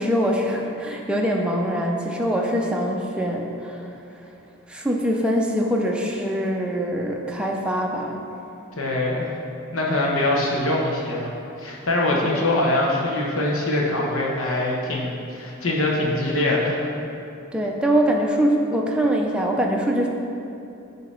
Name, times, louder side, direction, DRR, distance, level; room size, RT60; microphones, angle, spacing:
voice 1, 0.0-3.9 4.7-8.2 12.3-12.5 17.5-20.1, equal, 5° right, 0 dB, 0.4 m, -23 dB
voice 2, 8.7-9.3 9.7-16.8, left 1 dB, 70° left, -2 dB, 1.1 m, -23 dB
7.9 x 2.9 x 5.5 m, 2.7 s
head